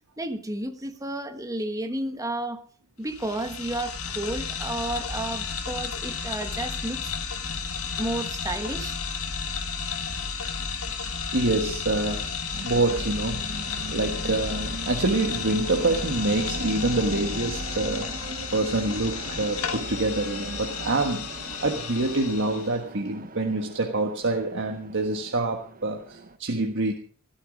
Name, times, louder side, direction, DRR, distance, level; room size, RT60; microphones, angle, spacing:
voice 1, 0.2-2.7 3.0-7.0 8.0-9.0, right 1 dB, 15° right, 1.4 m, -32 dB
sound 1, 3.1-22.8, left 5 dB, 75° left, 2.0 m, -32 dB
voice 2, 11.3-12.3 12.6-13.5 13.9-18.2 18.5-26.9, right 2 dB, 60° right, 1.5 m, -26 dB
sound 2, 12.5-26.4, right 2 dB, 40° right, 1.0 m, -41 dB
16.0 x 13.0 x 5.0 m
head